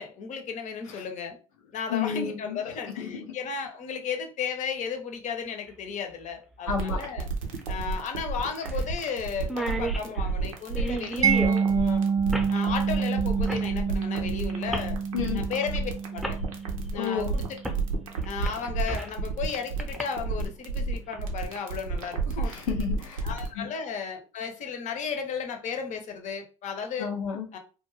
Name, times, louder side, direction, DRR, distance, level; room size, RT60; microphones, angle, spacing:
voice 1, 0.0-1.4 1.7-7.3 7.7-12.0 12.5-15.0 15.3-16.4 16.9-17.4 18.2-22.5 23.2-27.1 27.5-27.6, left 6 dB, 45° left, 0.7 m, -34 dB
voice 2, 1.9-2.6 3.0-3.1 6.7-7.0 15.1-15.4 16.9-17.3 22.5-23.3 23.6-23.7 27.0-27.5, left 7 dB, 80° left, 0.5 m, -30 dB
sound 1, 5.7-5.8 7.5-7.6 8.0-8.1 8.6-8.8 9.1-9.2 9.4-11.6 12.3-12.5 13.5-13.7 14.7-14.9 15.8-15.9 16.2-16.4 17.6-17.8 18.2-19.2 19.8-20.0, right 1 dB, ahead, 0.7 m, -33 dB
sound 2, 6.7-23.5, right 4 dB, 85° right, 0.6 m, -31 dB
Mallet percussion, 11.2-18.0, right 6 dB, 20° right, 0.3 m, -28 dB
2.5 x 2.2 x 3.1 m
hypercardioid pair, 65°, 17 cm